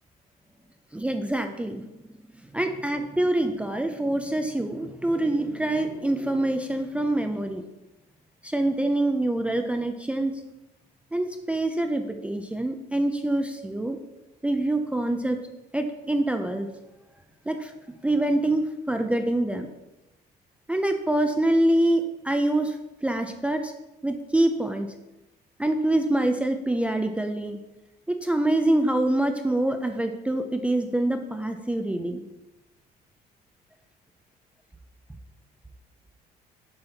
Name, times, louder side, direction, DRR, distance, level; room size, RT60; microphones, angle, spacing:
voice 1, 0.9-1.8 2.5-7.6 8.4-10.3 11.1-14.0 14.4-15.4 15.7-16.7 17.5-17.7 18.0-19.7 20.7-22.7 23.0-23.7 24.0-24.9 25.6-27.6 28.1-32.2, right 1 dB, 5° right, 5 dB, 0.4 m, -25 dB
6.8 x 4.1 x 4.0 m, 0.99 s
cardioid pair, 110°, 17 cm